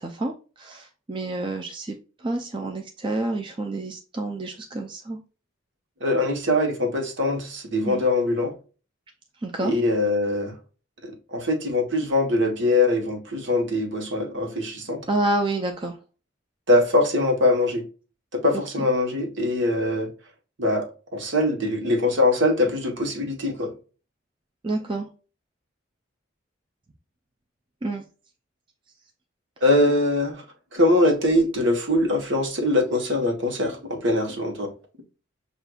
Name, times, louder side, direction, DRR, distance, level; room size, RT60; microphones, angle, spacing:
voice 1, 0.0-5.2 7.8-8.0 9.4-9.7 15.1-16.0 24.6-25.1 27.8-28.0, right 2 dB, 25° right, 0.4 m, -28 dB
voice 2, 6.0-8.5 9.6-10.5 11.0-15.0 16.7-17.8 18.3-20.1 20.6-20.9 21.1-23.7 29.6-30.4 30.7-34.7, left 1 dB, 65° right, 1.1 m, -22 dB
6.4 x 2.4 x 2.3 m
head